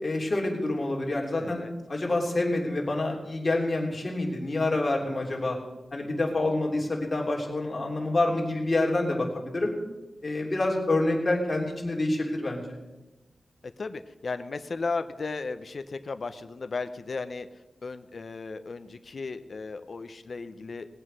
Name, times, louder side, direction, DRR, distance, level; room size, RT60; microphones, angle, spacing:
voice 1, 0.0-1.6 1.9-5.6 5.9-9.7 10.2-12.6, left 2 dB, 35° left, -1 dB, 3.2 m, -27 dB
voice 2, 1.4-1.7 6.5-6.9 13.8-17.5 17.8-20.9, left 4 dB, 55° left, 9 dB, 0.7 m, -35 dB
19.0 x 7.8 x 6.4 m, 1.1 s
wide cardioid pair, 100°, 0 cm